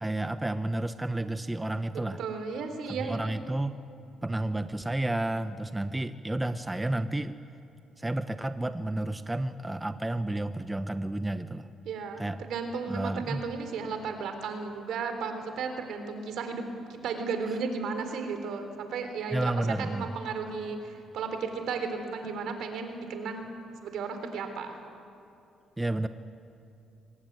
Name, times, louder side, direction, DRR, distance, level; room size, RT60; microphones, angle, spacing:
voice 1, 0.0-2.2 2.9-3.8 4.2-7.4 8.0-11.7 12.2-12.4 12.9-13.5 19.3-20.1 25.8-26.1, right 1 dB, 10° right, 10 dB, 0.8 m, -31 dB
voice 2, 2.2-3.3 4.2-4.3 11.9-23.5 23.8-24.8, right 5 dB, 75° right, 7 dB, 3.6 m, -34 dB
24.5 x 19.0 x 9.5 m, 2.7 s
cardioid pair, 95°, 0 cm